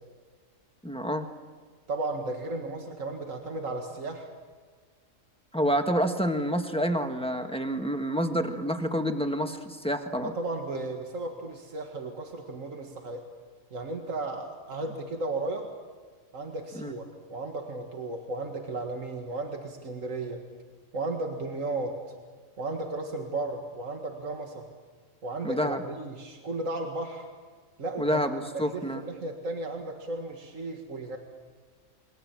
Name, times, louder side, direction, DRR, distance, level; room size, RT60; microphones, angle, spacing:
voice 1, 0.8-1.2 5.5-10.3 16.7-16.9 25.4-25.8 28.0-29.0, equal, 5° left, 5 dB, 1.5 m, -28 dB
voice 2, 1.9-4.3 10.2-13.2 13.7-15.7 16.3-20.4 20.9-22.0 22.6-24.7 25.2-27.3 27.8-28.2 28.5-31.2, right 2 dB, 75° right, 3 dB, 2.4 m, -34 dB
28.5 x 23.0 x 7.4 m, 1.5 s
omnidirectional pair, 1.4 m